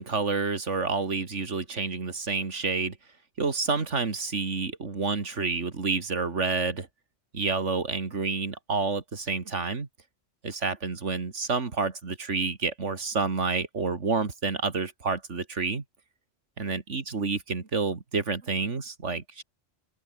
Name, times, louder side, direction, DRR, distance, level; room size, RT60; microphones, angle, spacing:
voice 1, 0.0-3.0 3.4-6.9 7.3-9.9 10.4-15.8 16.6-19.4, right 4 dB, 75° right, 2.6 m, -29 dB
open air
omnidirectional pair, 1.2 m